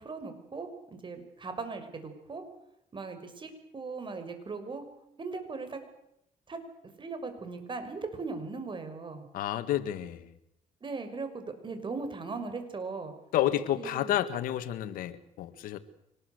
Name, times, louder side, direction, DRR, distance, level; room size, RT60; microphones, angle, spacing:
voice 1, 0.0-2.4 2.9-4.8 5.2-5.8 6.5-6.6 7.0-9.3 10.8-13.1 13.8-14.1, right 4 dB, 35° right, 8 dB, 6.1 m, -38 dB
voice 2, 9.3-10.3 13.3-15.8, left 12 dB, 85° left, 10 dB, 1.9 m, -30 dB
25.0 x 20.0 x 8.1 m, 0.80 s
cardioid pair, 85°, 14 cm